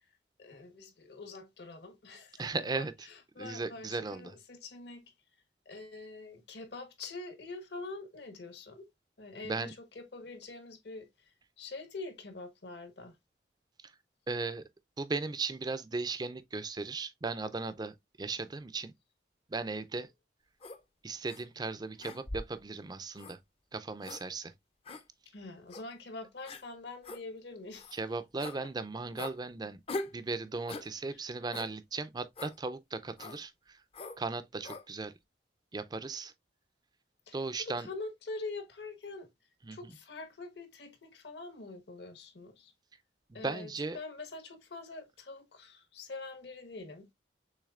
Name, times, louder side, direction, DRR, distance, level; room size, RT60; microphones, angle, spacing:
voice 1, 0.4-5.0 5.6-8.9 9.2-11.1 11.6-13.2 25.3-27.9 28.4-28.7 31.1-31.2 37.3-39.3 39.7-42.7 43.3-47.1, left 3 dB, 65° left, 1.2 m, -45 dB
voice 2, 2.4-2.9 3.4-4.3 9.4-9.7 14.3-14.6 15.0-18.9 19.5-20.1 21.0-23.4 23.7-24.5 27.9-29.8 30.1-33.8 34.2-35.1 35.7-36.3 37.3-37.9 39.6-39.9 43.3-44.0, right 3 dB, 20° right, 0.4 m, -37 dB
sound 1, 20.6-20.8 21.3-21.4 22.0-22.6 23.2-23.4 24.0-24.2 24.9-25.0 25.7-25.8 26.5-26.6 27.0-27.2 27.8-28.0 28.4-28.6 29.2-29.4 29.9-30.2 30.7-30.9 31.5-31.7 32.4-32.6 33.2-33.4 33.9-34.2 34.6-34.8, left 2 dB, 30° left, 0.5 m, -41 dB
6.4 x 3.5 x 2.4 m
head